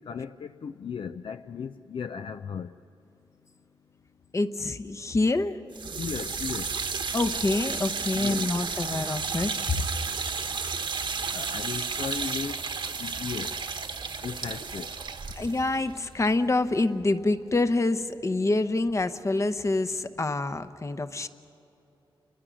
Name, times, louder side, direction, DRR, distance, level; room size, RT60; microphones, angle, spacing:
voice 1, 0.0-2.8 5.9-6.7 8.1-8.5 11.3-13.6 14.2-14.9, left 6 dB, 65° left, 9 dB, 0.5 m, -36 dB
voice 2, 4.3-5.6 7.1-9.8 15.3-21.3, left 2 dB, 35° left, 11 dB, 0.9 m, -26 dB
sound 1, 5.7-16.8, right 5 dB, 60° right, 1.3 m, -33 dB
29.5 x 22.5 x 6.3 m, 3.0 s
cardioid pair, 80°, 9 cm